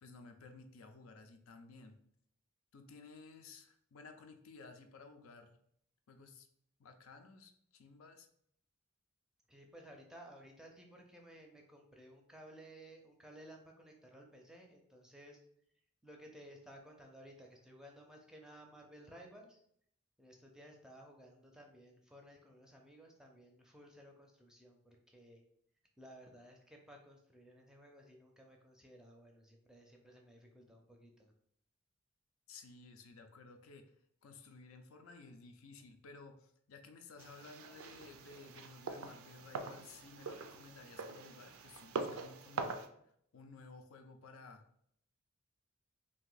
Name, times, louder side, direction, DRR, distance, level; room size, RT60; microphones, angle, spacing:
voice 1, 0.0-2.0 2.7-5.6 6.1-6.5 6.8-8.3 32.5-33.9 34.2-42.8 43.3-44.6, left 4 dB, 75° left, 6 dB, 0.5 m, -55 dB
voice 2, 9.5-15.4 16.0-19.6 20.2-25.4 26.0-31.3, right 1 dB, 5° right, 1 dB, 0.5 m, -57 dB
sound 1, 37.2-42.9, right 4 dB, 75° right, 0.4 m, -44 dB
2.8 x 2.6 x 3.8 m, 0.69 s
head